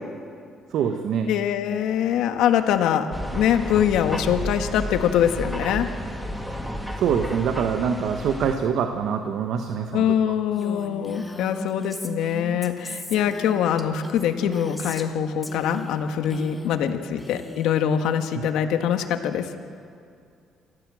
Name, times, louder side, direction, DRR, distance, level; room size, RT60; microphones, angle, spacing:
voice 1, 0.7-1.3 6.7-10.0, right 7 dB, 75° right, 6 dB, 1.3 m, -25 dB
voice 2, 1.3-5.9 9.9-19.7, left 9 dB, 85° left, 7 dB, 1.5 m, -23 dB
sound 1, 3.1-8.5, equal, 5° right, 2.6 m, -32 dB
Female speech woman speaking, 10.5-15.1 15.4-16.0 16.2-16.9 17.2-17.8, left 1 dB, 10° left, 2.3 m, -38 dB
28.0 x 14.5 x 7.7 m, 2.3 s
cardioid pair, 85°, 0 cm